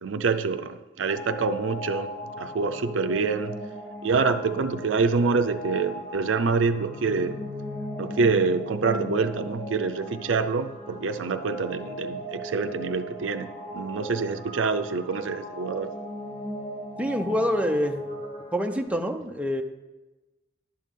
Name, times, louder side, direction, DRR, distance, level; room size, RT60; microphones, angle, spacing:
voice 1, 0.0-3.6 4.0-7.4 8.0-15.9, right 4 dB, 85° right, 9 dB, 0.5 m, -26 dB
sound 1, 1.1-18.9, left 1 dB, 35° left, 1.3 m, -38 dB
voice 2, 17.0-18.1 18.5-19.6, equal, 5° right, 4 dB, 0.6 m, -26 dB
11.5 x 9.0 x 3.7 m, 1.1 s
head